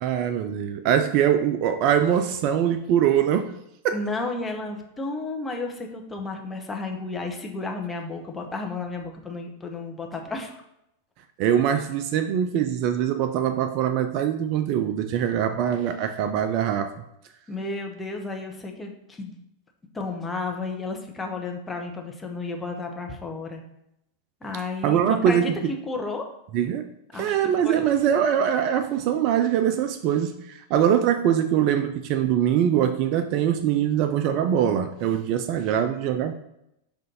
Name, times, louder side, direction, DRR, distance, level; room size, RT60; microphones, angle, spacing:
voice 1, 0.0-3.6 3.8-4.0 11.4-16.9 24.8-25.5 26.5-36.3, right 9 dB, 40° right, 8 dB, 0.3 m, -23 dB
voice 2, 3.9-10.6 17.5-19.4 19.9-23.6 24.4-25.5 25.9-26.3 27.1-27.8, left 3 dB, 15° left, 2 dB, 0.7 m, -32 dB
5.1 x 2.5 x 4.1 m, 0.82 s
figure-of-eight pair, 90°, 0 cm